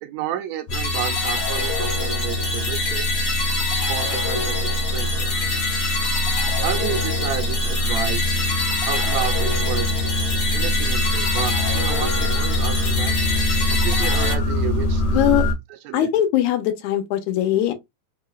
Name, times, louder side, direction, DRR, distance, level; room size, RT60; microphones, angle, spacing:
voice 1, 0.0-3.1 3.8-5.3 6.6-8.4 8.8-9.9 10.5-13.1 13.7-16.2, right 11 dB, 85° right, 1.6 m, -31 dB
sound 1, 0.7-15.5, equal, 65° left, 2.1 m, -24 dB
sound 2, 0.7-14.3, left 3 dB, 50° left, 1.6 m, -26 dB
voice 2, 15.1-15.5 15.9-17.7, left 12 dB, 80° left, 2.1 m, -20 dB
4.8 x 2.9 x 2.3 m
omnidirectional pair, 3.6 m